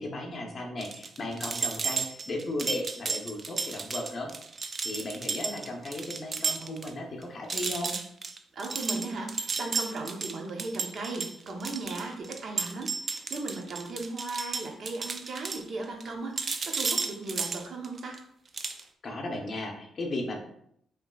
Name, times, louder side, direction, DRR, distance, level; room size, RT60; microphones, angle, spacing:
voice 1, 0.0-4.3 4.8-7.9 19.0-20.4, left 1 dB, 40° left, 1 dB, 0.9 m, -35 dB
sound 1, 0.8-6.9 7.2-7.3 7.5-16.1 16.4-18.2 18.5-18.8, right 4 dB, 35° right, 0.4 m, -33 dB
voice 2, 8.5-18.2, right 3 dB, 55° right, 1 dB, 0.9 m, -37 dB
5.0 x 3.1 x 2.4 m, 0.72 s
cardioid pair, 90°, 0 cm